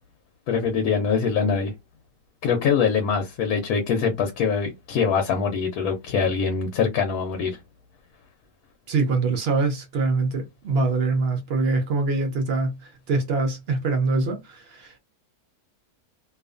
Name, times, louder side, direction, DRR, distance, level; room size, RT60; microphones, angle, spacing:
voice 1, 0.5-1.7 2.4-7.6, left 6 dB, 75° left, 1.1 m, -23 dB
voice 2, 8.9-15.0, right 3 dB, 65° right, 0.6 m, -24 dB
2.5 x 2.3 x 2.4 m
omnidirectional pair, 1.6 m